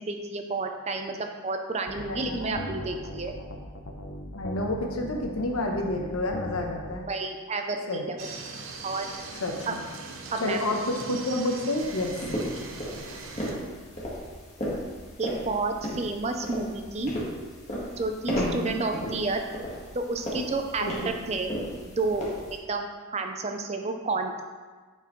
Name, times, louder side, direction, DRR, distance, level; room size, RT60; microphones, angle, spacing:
voice 1, 0.0-3.3 7.1-8.2 8.8-9.1 9.7-9.8 10.3-10.6 15.2-17.1 18.0-19.4 19.9-21.5 22.0-24.4, right 3 dB, 30° right, 5 dB, 0.5 m, -30 dB
sound 1, 1.9-6.9, equal, 55° left, 0.7 m, -39 dB
voice 2, 2.1-2.8 4.3-7.1 7.9-8.1 9.4-9.8 10.4-12.1 12.4-12.8 18.3-18.8 20.8-21.2, left 1 dB, 85° left, 2 dB, 0.9 m, -30 dB
sound 2, 8.2-13.5, right 3 dB, 70° right, 0.8 m, -40 dB
sound 3, 11.8-22.6, equal, 30° left, 1.5 m, -35 dB
8.9 x 4.6 x 3.1 m, 1.4 s
head